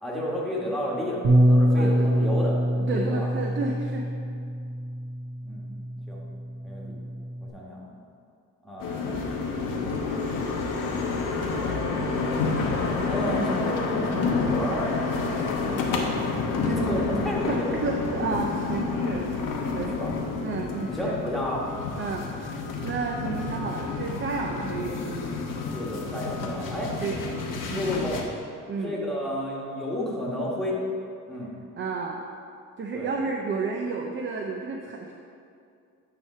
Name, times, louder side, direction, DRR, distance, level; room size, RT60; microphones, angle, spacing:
voice 1, 0.0-2.6 2.9-3.3 5.4-5.7 6.1-6.2 6.6-7.0 7.4-8.0 8.6-10.3 13.1-16.2 16.6-17.7 19.9-20.1 20.7-21.6 25.5-27.0 27.7-28.2 28.8-30.8 31.3-31.5 32.9-33.1, left 1 dB, ahead, -4 dB, 1.3 m, -32 dB
Bass guitar, 1.2-7.5, equal, 55° right, 1.1 m, -25 dB
voice 2, 1.8-2.1 2.9-4.1 17.5-19.3 19.7-20.0 20.4-21.2 22.0-25.3 27.0-27.2 27.7-27.9 28.7-29.0 31.8-32.2 32.8-35.1, right 4 dB, 35° right, 1 dB, 0.5 m, -31 dB
sound 1, 8.8-28.2, left 4 dB, 85° left, 1.0 m, -29 dB
9.4 x 3.3 x 5.6 m, 2.4 s
cardioid pair, 135°, 32 cm